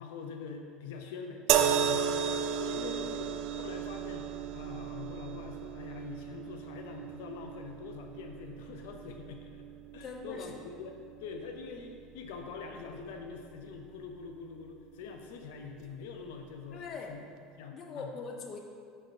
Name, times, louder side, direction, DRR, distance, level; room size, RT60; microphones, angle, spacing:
voice 1, 0.0-2.2 2.6-9.6 9.9-17.3 17.6-18.1, left 5 dB, 85° left, 4 dB, 0.5 m, -44 dB
sound 1, 1.5-14.8 15.8-16.0, right 8 dB, 55° right, 0.3 m, -35 dB
voice 2, 2.8-3.1 10.0-10.5 16.7-17.2 17.7-18.6, left 4 dB, 35° left, 2 dB, 0.7 m, -42 dB
5.4 x 4.4 x 4.7 m, 2.2 s
supercardioid pair, 135°, 0 cm